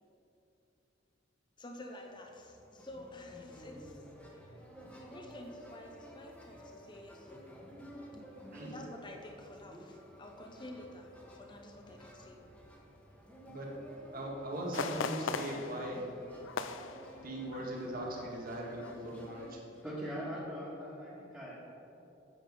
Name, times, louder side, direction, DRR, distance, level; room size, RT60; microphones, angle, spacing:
voice 1, 1.6-4.6 5.0-7.6 8.7-12.4, left 1 dB, 25° left, 2 dB, 0.7 m, -50 dB
sound 1, 2.1-19.5, equal, 5° left, 1.2 m, -53 dB
voice 2, 14.1-16.1 16.3-16.5 17.1-19.6, right 1 dB, 50° right, -1 dB, 1.7 m, -40 dB
sound 2, 14.7-17.8 18.1-18.3 18.8-19.2 19.6-19.7, left 5 dB, 80° left, 0.4 m, -39 dB
voice 3, 19.7-21.7, equal, 10° right, -10 dB, 1.8 m, -41 dB
9.1 x 7.3 x 5.3 m, 2.9 s
head